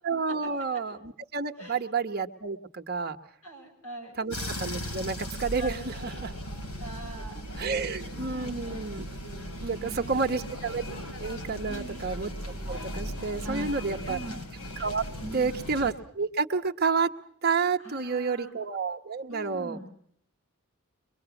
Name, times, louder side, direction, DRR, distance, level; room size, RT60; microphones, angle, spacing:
voice 1, 0.0-3.2 4.2-6.3 7.6-9.0 9.6-10.8 11.2-12.3 12.7-14.2 14.8-15.0 15.3-17.1 17.4-19.8, right 4 dB, 45° right, 5 dB, 1.1 m, -30 dB
voice 2, 3.4-4.2 5.6-5.9 6.8-7.9 8.2-8.7 9.6-10.4 11.7-12.0 13.4-13.8 14.1-14.4 15.2-15.6 17.8-18.5 19.3-19.9, right 2 dB, 70° left, 4 dB, 5.6 m, -42 dB
sound 1, 4.3-15.9, equal, 85° left, 3.7 m, -37 dB
23.5 x 22.5 x 7.1 m, 0.64 s
head